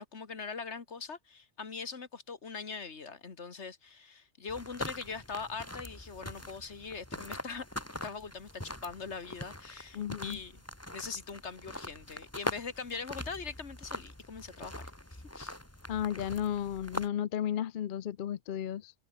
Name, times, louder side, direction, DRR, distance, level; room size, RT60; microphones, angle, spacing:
voice 1, 0.0-7.7 8.0-10.6 10.9-14.8 15.1-15.6, left 5 dB, 75° left, 2.1 m, -42 dB
sound 1, 4.5-17.1, left 1 dB, 10° left, 2.8 m, -43 dB
voice 2, 9.9-10.4 15.9-18.9, left 10 dB, 55° left, 0.7 m, -34 dB
omnidirectional pair, 1.2 m